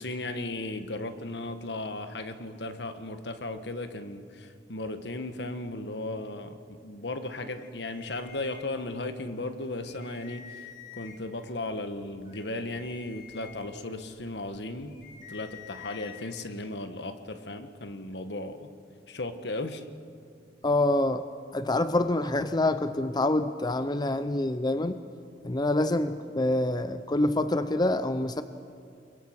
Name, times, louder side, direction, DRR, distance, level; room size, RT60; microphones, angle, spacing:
voice 1, 0.0-10.7 10.9-14.9 15.3-18.7 19.1-19.8, left 2 dB, 70° left, 9 dB, 1.5 m, -36 dB
sound 1, 7.5-9.1 9.5-9.6 9.8-11.4 11.9-16.3, left 8 dB, 45° left, 2.7 m, -49 dB
voice 2, 20.6-21.2 21.5-25.0 25.4-28.4, left 2 dB, 25° left, 11 dB, 0.6 m, -26 dB
29.0 x 22.5 x 6.0 m, 2.5 s
head